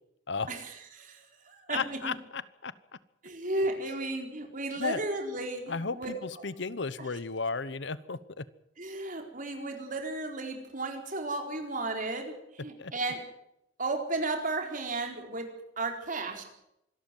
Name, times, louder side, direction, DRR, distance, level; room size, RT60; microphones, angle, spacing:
voice 1, 0.5-2.1 3.2-6.5 7.0-7.1 8.8-13.2 13.8-16.4, right 2 dB, 45° right, 4 dB, 4.3 m, -34 dB
voice 2, 1.7-2.7 4.8-5.0 5.7-8.4 12.8-12.9, left 4 dB, 65° left, 17 dB, 1.0 m, -34 dB
25.5 x 13.0 x 9.2 m, 0.83 s
head